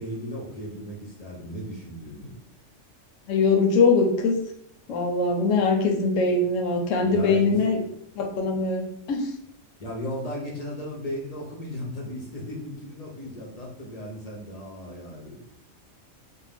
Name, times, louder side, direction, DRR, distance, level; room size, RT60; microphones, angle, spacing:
voice 1, 0.0-2.3 7.0-7.6 9.8-15.4, equal, 45° left, -3 dB, 0.5 m, -36 dB
voice 2, 3.3-4.4 4.9-7.8 8.2-9.3, left 4 dB, 80° left, 3 dB, 0.9 m, -22 dB
2.6 x 2.1 x 3.3 m, 0.73 s
omnidirectional pair, 1.3 m